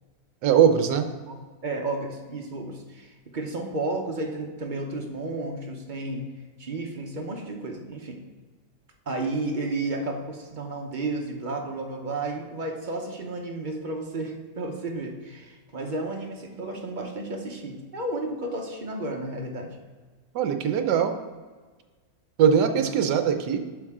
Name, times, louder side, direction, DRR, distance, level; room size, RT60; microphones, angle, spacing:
voice 1, 0.4-1.1 20.3-21.1 22.4-23.6, right 8 dB, 70° right, 7 dB, 1.3 m, -21 dB
voice 2, 1.3-6.3 6.6-8.2 9.1-19.8 22.6-22.9, right 2 dB, 40° right, 1 dB, 0.7 m, -32 dB
9.4 x 6.2 x 3.6 m, 1.4 s
omnidirectional pair, 2.0 m